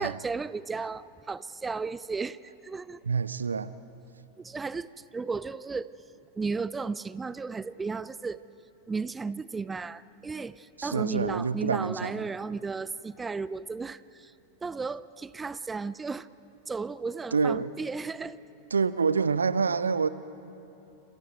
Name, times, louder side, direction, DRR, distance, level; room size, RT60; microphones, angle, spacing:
voice 1, 0.0-3.0 4.4-6.0 6.4-8.4 8.9-14.3 14.6-16.3 16.7-18.4, right 4 dB, 15° right, 0.4 m, -34 dB
voice 2, 3.0-3.7 10.8-12.2 17.3-17.7 18.7-20.1, right 5 dB, 75° right, 0.6 m, -27 dB
28.0 x 27.5 x 4.6 m
figure-of-eight pair, 90°, 0 cm